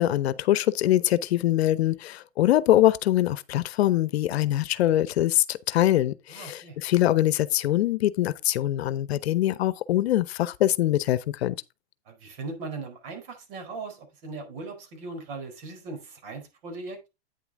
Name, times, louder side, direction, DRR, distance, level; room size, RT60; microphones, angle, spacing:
voice 1, 0.0-11.6, left 13 dB, 75° left, 0.8 m, -23 dB
voice 2, 6.3-6.8 12.0-17.1, right 3 dB, 60° right, 4.4 m, -39 dB
9.1 x 7.1 x 3.6 m
hypercardioid pair, 130°, 32 cm